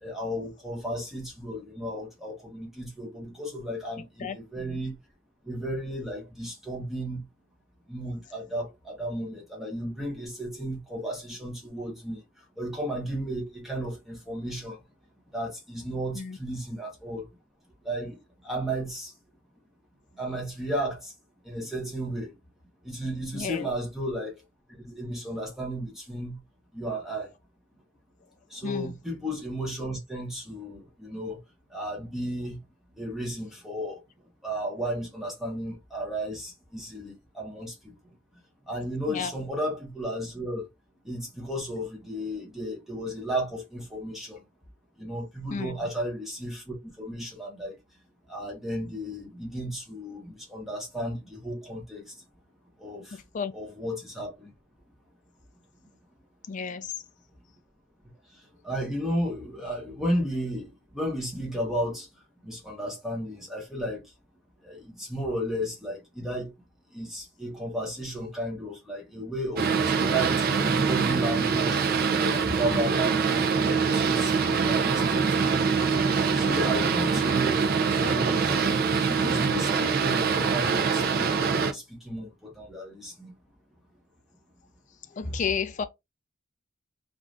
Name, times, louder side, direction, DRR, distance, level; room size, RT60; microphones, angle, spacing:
voice 1, 0.0-5.0 5.5-7.2 7.9-12.2 12.6-14.8 15.3-17.3 17.8-19.1 20.1-21.1 21.4-22.3 22.8-24.3 24.8-26.4 26.7-27.3 28.5-31.4 31.7-32.6 33.0-34.0 34.4-38.0 38.7-40.7 41.0-44.4 45.0-47.8 48.3-52.1 52.8-53.2 53.5-54.5 58.6-62.1 62.4-64.0 64.6-66.5 66.9-71.8 72.2-75.6 76.3-83.3 85.2-85.4, equal, ahead, 0.8 m, -34 dB
voice 2, 23.3-23.7 28.6-28.9 39.1-39.3 45.5-45.8 53.3-53.5 56.5-56.9 72.7-72.8 85.2-85.9, left 6 dB, 40° left, 0.3 m, -32 dB
Boat Water vehicle, 69.6-81.7, right 5 dB, 45° right, 0.4 m, -24 dB
2.5 x 2.3 x 3.1 m
head